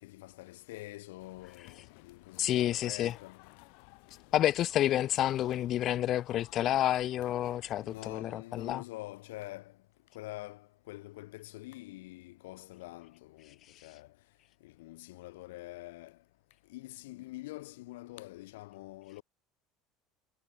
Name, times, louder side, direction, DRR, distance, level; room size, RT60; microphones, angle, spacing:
voice 1, 0.0-3.4 7.8-9.8 10.1-14.1 14.6-16.2 16.7-19.2, left 19 dB, 90° left, 4.0 m, -46 dB
sound 1, 1.2-8.2, left 40 dB or more, 75° left, 6.6 m, -57 dB
voice 2, 2.4-3.2 4.3-8.8, left 12 dB, 50° left, 0.7 m, -29 dB
supercardioid pair, 110°, 0 cm